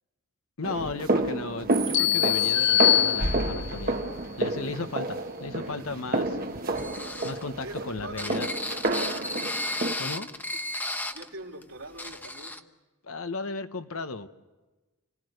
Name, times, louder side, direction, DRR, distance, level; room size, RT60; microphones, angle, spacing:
voice 1, 0.6-4.0 4.4-6.4 7.2-8.5 10.0-10.3 13.0-14.3, left 3 dB, 70° left, 9 dB, 1.3 m, -35 dB
sound 1, 0.6-9.9, right 2 dB, 40° right, 1.4 m, -29 dB
sound 2, 1.9-3.8, left 13 dB, 55° left, 1.4 m, -23 dB
sound 3, 6.8-11.3 11.6-11.7 12.0-12.6, left 1 dB, 10° left, 1.0 m, -34 dB
voice 2, 7.6-8.8 11.1-12.6, right 2 dB, 65° right, 1 dB, 3.5 m, -43 dB
29.5 x 19.0 x 6.7 m, 1.2 s
head